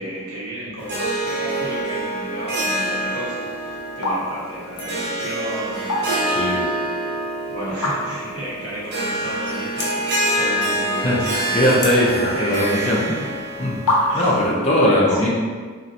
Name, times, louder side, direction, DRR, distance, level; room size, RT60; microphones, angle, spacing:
voice 1, 0.0-6.5 7.5-11.8 12.3-13.3 14.1-14.4 14.8-15.3, equal, 65° right, -7 dB, 1.0 m, -32 dB
Harp, 0.8-14.5, right 1 dB, 45° right, 0.6 m, -26 dB
sound 1, 4.0-4.2 4.5-4.9 5.7-6.4 6.7-6.8 7.7-8.3 8.8-8.9 9.1-9.2 9.7-10.1 10.5-11.0 11.3-12.7 13.4-13.5 13.9-14.4, left 1 dB, 70° left, 0.6 m, -24 dB
voice 2, 6.3-6.6 11.0-13.0 13.6-15.3, left 1 dB, 30° left, -4 dB, 0.5 m, -20 dB
3.1 x 2.5 x 2.6 m, 1.6 s
head